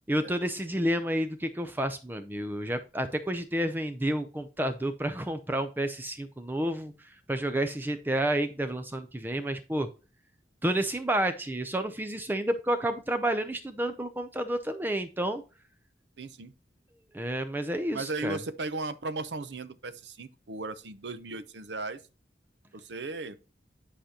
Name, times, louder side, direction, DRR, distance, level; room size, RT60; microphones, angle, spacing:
voice 1, 0.1-9.9 10.6-15.4 17.1-18.4, right 1 dB, 10° right, 0.5 m, -30 dB
voice 2, 16.2-16.5 17.9-22.0 22.7-23.4, right 3 dB, 75° right, 0.7 m, -36 dB
10.5 x 5.0 x 2.8 m
head